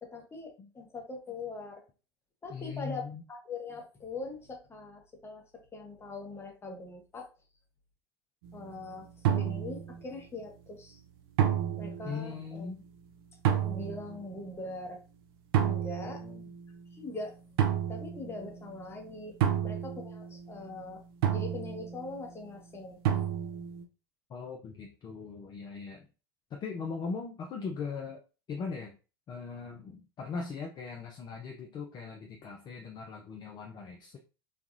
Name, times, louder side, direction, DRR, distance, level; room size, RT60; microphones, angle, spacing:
voice 1, 0.0-1.8 2.4-5.4 5.7-7.3 8.5-11.0 11.8-12.7 13.5-15.0 15.6-16.2 16.9-17.3 17.9-19.4 19.6-21.0 21.3-23.0, left 3 dB, 20° left, 2 dB, 0.9 m, -42 dB
voice 2, 2.5-3.2 12.0-12.8 16.0-16.4 19.4-19.5 24.3-26.1 26.5-28.2 28.5-29.0 29.3-34.2, left 5 dB, 35° left, 2 dB, 0.5 m, -40 dB
sound 1, 8.4-8.8 9.2-10.2 11.4-12.4 13.4-14.2 15.5-16.8 17.6-18.7 19.4-20.6 21.2-22.2 23.0-23.8, right 9 dB, 70° right, 0.5 m, -30 dB
3.3 x 2.2 x 2.5 m, 0.33 s
hypercardioid pair, 90°, 13 cm